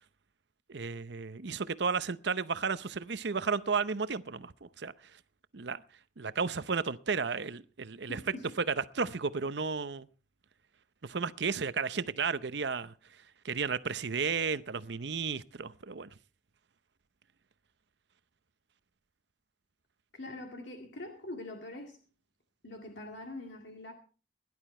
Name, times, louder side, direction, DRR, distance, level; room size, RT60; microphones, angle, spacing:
voice 1, 0.7-4.9 5.5-5.8 6.2-8.2 8.8-10.1 11.0-12.9 13.4-16.1, right 5 dB, 65° right, 0.7 m, -33 dB
voice 2, 8.1-8.4 20.1-22.0 22.6-23.9, left 2 dB, 70° left, 2.0 m, -43 dB
17.5 x 11.0 x 4.3 m
head